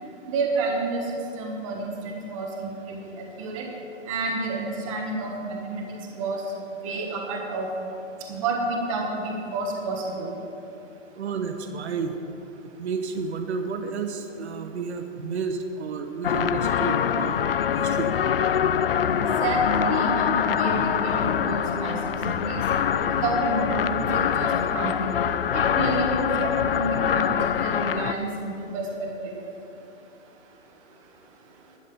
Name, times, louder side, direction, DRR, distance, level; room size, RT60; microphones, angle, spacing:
voice 1, 0.3-1.0 1.4-2.5 2.8-3.1 3.4-3.7 4.1-5.8 6.2-6.4 6.8-7.7 8.3-10.3 19.1-22.0 22.3-22.6 23.1-25.1 25.5-28.9 29.2-29.3, right 2 dB, 25° right, 0 dB, 1.3 m, -29 dB
voice 2, 11.1-12.2 12.8-17.4 17.8-18.1, right 5 dB, 60° right, 6 dB, 1.1 m, -31 dB
sound 1, 16.2-28.1, left 8 dB, 50° left, 0.4 m, -24 dB
12.0 x 6.5 x 9.4 m, 2.8 s
hypercardioid pair, 165°, 38 cm